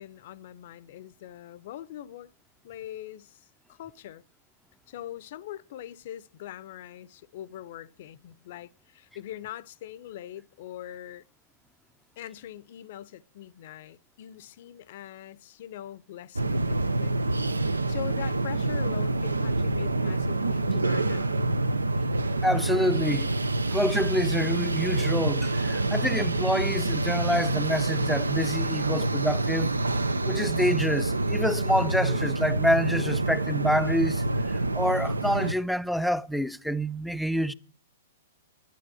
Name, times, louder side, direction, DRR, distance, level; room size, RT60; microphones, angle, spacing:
voice 1, 0.0-2.3 2.6-4.2 4.9-11.2 12.2-17.1 17.9-21.4, left 12 dB, 55° left, 0.6 m, -42 dB
sound 1, 16.4-35.5, right 2 dB, 90° right, 0.6 m, -27 dB
voice 2, 22.4-23.3 23.7-29.7 30.2-34.2 34.7-37.5, equal, ahead, 0.5 m, -27 dB
11.5 x 9.3 x 7.6 m
hypercardioid pair, 115°, 0 cm